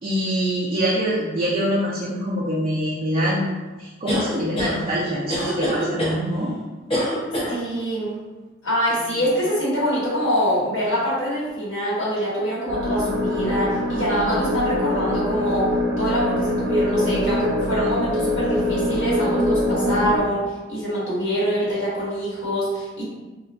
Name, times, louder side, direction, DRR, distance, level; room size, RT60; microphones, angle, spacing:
voice 1, 0.0-3.5 3.8-6.5 9.2-9.3, equal, 30° right, -7 dB, 0.4 m, -24 dB
sound 1, 4.1-4.7 5.3-6.2 6.9-7.5, equal, 30° left, 0.8 m, -24 dB
voice 2, 7.5-8.2 8.6-15.7 16.0-23.1, equal, 75° left, -7 dB, 1.2 m, -24 dB
sound 2, 12.7-20.2, left 1 dB, 60° right, 0.7 m, -23 dB
2.4 x 2.1 x 3.8 m, 1.2 s
head